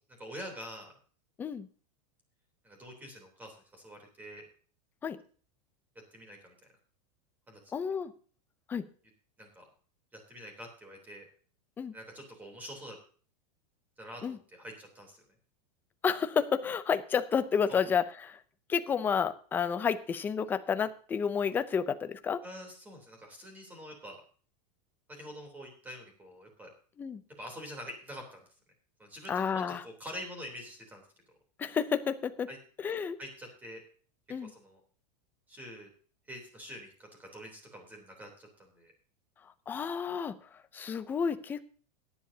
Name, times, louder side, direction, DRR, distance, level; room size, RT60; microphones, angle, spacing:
voice 1, 0.2-0.9 2.6-4.4 6.1-6.5 7.5-7.6 9.4-9.7 10.1-11.3 11.9-13.0 14.0-15.1 17.7-17.8 22.4-24.2 25.1-26.7 27.4-28.4 29.0-31.0 32.5-32.6 33.2-33.8 34.4-34.8 35.5-35.9 36.3-38.9, equal, 10° right, 2 dB, 3.2 m, -46 dB
voice 2, 7.7-8.1 8.7-8.9 11.8-12.0 14.2-14.4 16.0-18.4 18.7-22.4 27.0-27.2 29.3-29.8 31.6-32.5 32.8-33.2 34.3-34.5 39.7-41.6, left 6 dB, 10° left, 11 dB, 0.5 m, -31 dB
17.5 x 10.5 x 2.8 m, 0.42 s
supercardioid pair, 175°, 21 cm